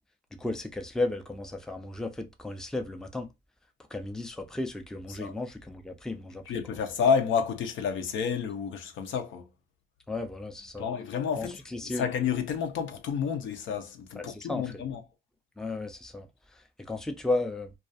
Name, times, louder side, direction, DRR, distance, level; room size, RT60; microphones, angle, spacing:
voice 1, 0.3-3.3 3.9-6.4 10.1-10.9 11.4-12.0 14.1-14.8 15.6-16.3 16.5-17.7, left 2 dB, 5° left, 0.4 m, -34 dB
voice 2, 6.5-9.5 10.8-15.0, left 6 dB, 75° left, 0.6 m, -30 dB
2.3 x 2.3 x 2.5 m
cardioid pair, 90°, 20 cm